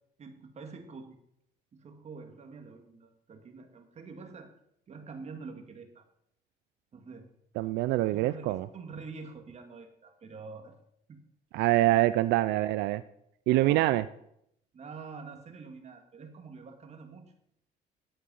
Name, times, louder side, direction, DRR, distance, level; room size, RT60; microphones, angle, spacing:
voice 1, 0.2-1.2 1.7-4.6 4.9-6.0 6.9-7.3 8.1-10.8 11.1-11.2 13.5-13.9 14.7-17.2, right 4 dB, 40° right, 5 dB, 1.9 m, -46 dB
voice 2, 7.6-8.7 11.5-13.0 13.5-14.0, right 16 dB, 90° right, 14 dB, 0.4 m, -25 dB
10.5 x 8.5 x 5.4 m, 0.75 s
cardioid pair, 110°, 17 cm